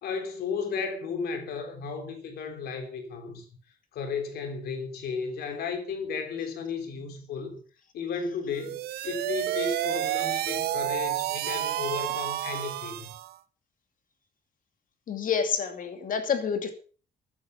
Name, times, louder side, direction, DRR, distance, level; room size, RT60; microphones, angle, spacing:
voice 1, 0.0-3.5 3.9-7.6 7.9-13.1, left 5 dB, 85° left, 3.4 m, -34 dB
sound 1, 8.5-13.3, right 13 dB, 90° right, 0.8 m, -30 dB
voice 2, 15.1-16.7, left 6 dB, 55° left, 2.6 m, -28 dB
13.5 x 9.7 x 5.8 m
cardioid pair, 110°, 16 cm